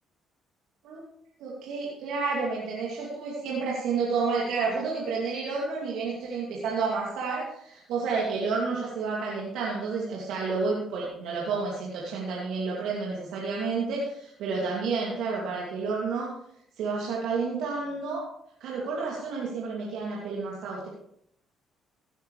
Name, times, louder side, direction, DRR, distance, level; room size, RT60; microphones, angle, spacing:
voice 1, 1.4-16.3 16.8-18.3 18.6-20.9, right 4 dB, 75° right, -4 dB, 2.6 m, -30 dB
16.5 x 9.8 x 3.3 m, 0.73 s
hypercardioid pair, 55°, 0 cm